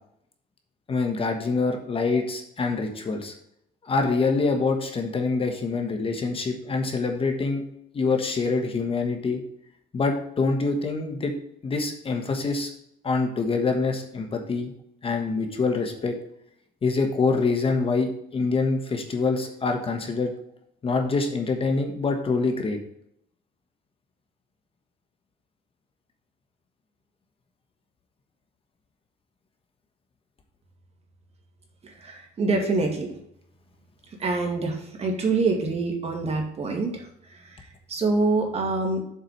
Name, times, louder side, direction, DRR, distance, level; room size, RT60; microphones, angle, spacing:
voice 1, 0.9-3.3 3.8-7.6 7.9-9.4 9.9-11.3 11.6-12.7 13.0-14.7 15.0-16.1 16.8-20.3 20.8-22.8, left 4 dB, 35° left, 4 dB, 1.4 m, -25 dB
voice 2, 31.8-33.1 34.2-39.0, right 3 dB, 35° right, 2 dB, 2.3 m, -26 dB
7.4 x 4.8 x 6.5 m, 0.74 s
cardioid pair, 110°, 17 cm